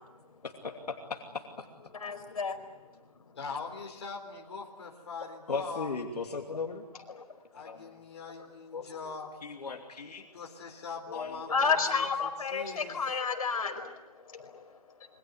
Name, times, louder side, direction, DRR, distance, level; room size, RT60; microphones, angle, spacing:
voice 1, 0.4-1.6 5.5-6.8 7.6-7.9 8.7-9.2 9.4-10.3 11.1-11.6, left 4 dB, 85° left, 2 dB, 2.8 m, -38 dB
voice 2, 1.9-2.6 7.1-7.2 11.5-13.9 14.3-14.6, left 5 dB, 60° left, 5 dB, 5.0 m, -30 dB
voice 3, 3.4-6.0 7.5-9.3 10.3-13.0, left 5 dB, 45° left, 1 dB, 4.0 m, -42 dB
27.0 x 23.0 x 8.0 m, 1.0 s
hypercardioid pair, 180°, 20 cm